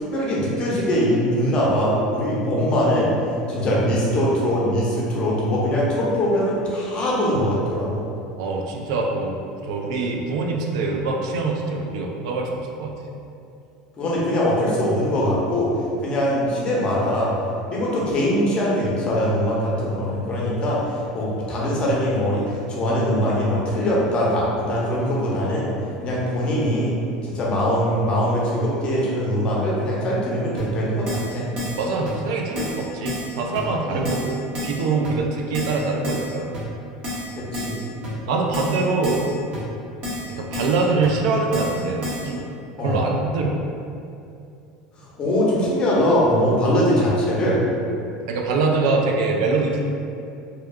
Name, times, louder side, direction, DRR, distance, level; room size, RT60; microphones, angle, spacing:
voice 1, 0.1-3.1 3.5-8.0 14.0-15.7 16.0-17.3 17.7-20.8 21.1-25.7 26.0-26.9 27.2-31.5 33.9-34.0 37.4-37.8 42.8-43.0 44.9-47.6, equal, 35° left, -5 dB, 0.7 m, -22 dB
voice 2, 8.4-9.4 9.7-12.9 31.8-36.5 38.3-39.3 40.3-42.5 42.8-43.6 48.3-49.9, right 3 dB, 80° right, 0 dB, 0.3 m, -24 dB
Keyboard (musical), 30.6-30.7 31.1-31.3 31.6-31.8 32.1-32.2 32.6-32.8 33.1-33.3 33.6-33.7 34.0-34.3 34.5-34.8 35.0-35.1 35.5-35.8 36.0-36.3 36.5-36.6 37.0-37.3 37.5-37.8 38.0-38.1 38.5-38.8 39.0-39.3 39.5-39.6 40.0-40.3 40.5-40.8 41.0-41.1 41.5-41.8 42.0-42.2, left 2 dB, 45° right, 0.8 m, -30 dB
2.7 x 2.2 x 2.2 m, 2.5 s
supercardioid pair, 125°, 3 cm